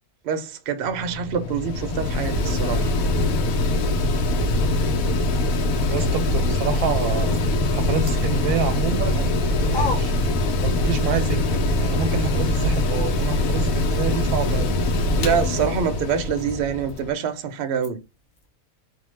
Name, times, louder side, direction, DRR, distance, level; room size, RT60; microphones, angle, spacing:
voice 1, 0.2-2.9 15.2-18.0, right 7 dB, 60° right, 0.6 m, -25 dB
Mechanical fan, 0.8-17.1, left 2 dB, 75° left, 1.0 m, -23 dB
voice 2, 5.9-7.4 7.7-10.1 10.6-14.8, right 6 dB, 85° right, 1.1 m, -28 dB
sound 1, 11.3-18.5, left 3 dB, 60° left, 0.3 m, -41 dB
2.6 x 2.1 x 3.1 m
omnidirectional pair, 1.6 m